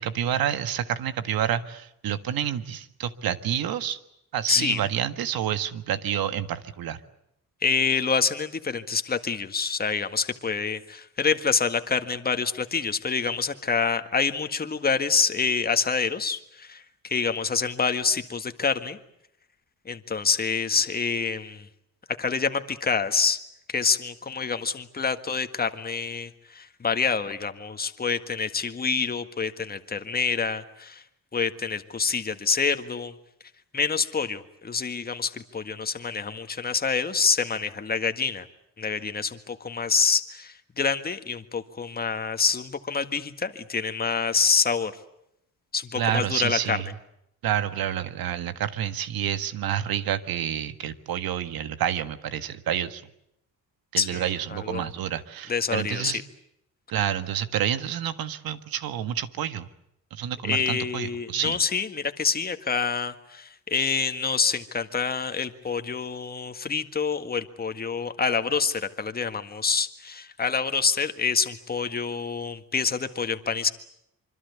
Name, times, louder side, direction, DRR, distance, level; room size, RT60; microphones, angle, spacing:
voice 1, 0.0-4.0 4.3-7.0 46.0-46.9 47.4-53.0 53.9-56.2 56.9-59.7 60.1-61.6, right 10 dB, 80° right, 11 dB, 1.7 m, -28 dB
voice 2, 4.5-4.8 7.6-19.0 19.9-21.7 22.2-23.4 23.7-31.0 31.3-33.1 33.7-38.5 38.8-44.9 45.7-46.8 54.0-54.9 55.5-56.1 60.4-73.7, left 5 dB, 25° left, 9 dB, 1.8 m, -27 dB
26.0 x 25.0 x 8.4 m, 0.79 s
cardioid pair, 120°, 35 cm